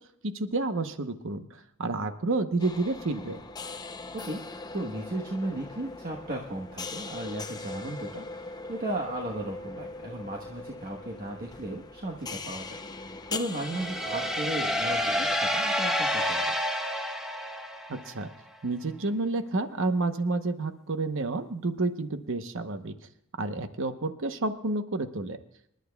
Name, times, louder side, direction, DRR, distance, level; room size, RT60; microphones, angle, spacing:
voice 1, 0.2-3.4 17.9-18.3 18.6-23.0 23.4-25.4, right 2 dB, 60° right, 9 dB, 0.9 m, -30 dB
sound 1, 2.6-15.4, left 3 dB, 20° left, 0.6 m, -41 dB
voice 2, 4.7-16.5, right 1 dB, 40° right, 0 dB, 1.2 m, -35 dB
sound 2, 13.5-18.2, equal, ahead, 1.2 m, -29 dB
26.5 x 11.5 x 2.3 m, 0.77 s
head